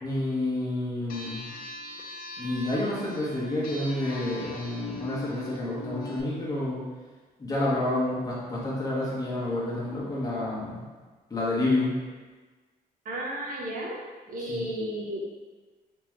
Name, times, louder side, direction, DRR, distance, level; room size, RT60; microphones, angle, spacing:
voice 1, 0.0-1.4 2.4-6.9 7.4-10.8 11.3-11.9 14.5-14.6, left 1 dB, 20° left, -7 dB, 1.1 m, -29 dB
sound 1, 1.1-6.2, left 2 dB, 65° left, 0.5 m, -40 dB
voice 2, 13.0-14.0 14.3-15.2, right 1 dB, 55° right, -2 dB, 0.7 m, -33 dB
3.6 x 3.0 x 3.0 m, 1.3 s
cardioid pair, 125°, 17 cm